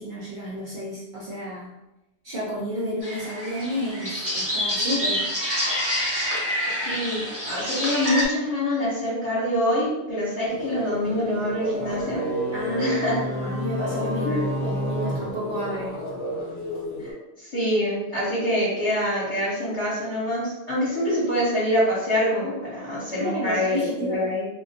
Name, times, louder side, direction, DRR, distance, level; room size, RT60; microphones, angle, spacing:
voice 1, 0.0-1.7 2.2-5.3 12.5-16.0 23.2-24.2, equal, 60° right, -6 dB, 0.6 m, -31 dB
sound 1, 3.0-8.3, equal, 20° right, 0.8 m, -27 dB
voice 2, 6.7-12.2 12.8-13.2 14.2-14.4 17.0-24.4, left 1 dB, 30° left, -11 dB, 1.0 m, -25 dB
sound 2, 10.5-17.1, right 1 dB, 70° left, 0.8 m, -32 dB
sound 3, 11.8-16.2, left 1 dB, 5° left, 0.3 m, -32 dB
2.1 x 2.1 x 2.7 m, 0.95 s
omnidirectional pair, 1.1 m